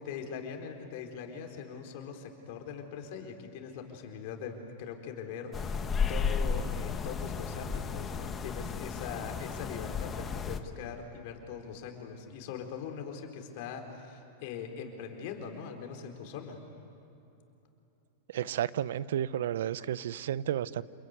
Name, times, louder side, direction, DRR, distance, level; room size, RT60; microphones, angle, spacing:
voice 1, 0.0-16.6, left 6 dB, 60° left, 4 dB, 4.2 m, -41 dB
sound 1, 5.5-10.6, left 5 dB, 20° left, 1.4 m, -33 dB
voice 2, 18.3-20.8, right 10 dB, 75° right, 18 dB, 0.7 m, -32 dB
28.5 x 22.0 x 9.6 m, 2.8 s
hypercardioid pair, 130°, 0 cm